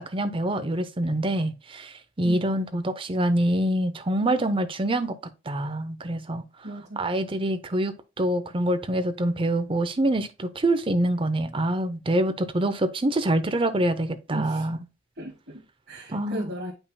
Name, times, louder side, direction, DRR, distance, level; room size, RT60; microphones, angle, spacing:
voice 1, 0.0-5.2 5.5-6.4 7.0-14.8 16.1-16.5, right 1 dB, 25° right, 0.6 m, -25 dB
voice 2, 2.2-2.6 6.6-7.0 14.3-14.7 15.2-16.7, right 1 dB, 55° right, 1.5 m, -36 dB
8.4 x 5.4 x 2.3 m
head